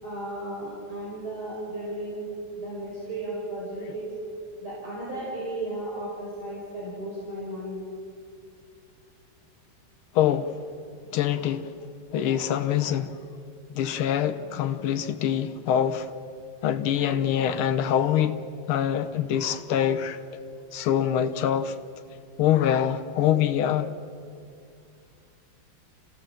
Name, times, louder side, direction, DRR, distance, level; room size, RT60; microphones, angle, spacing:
voice 1, 0.0-2.3 2.5-4.0 4.6-7.8, right 1 dB, 80° right, 5.8 m, -34 dB
voice 2, 10.2-10.6 11.1-11.7 12.1-13.2 13.7-16.1 16.6-18.4 18.7-20.2 20.7-21.8 22.4-23.9, left 10 dB, 90° left, 1.7 m, -24 dB
28.0 x 17.0 x 7.5 m
omnidirectional pair, 2.3 m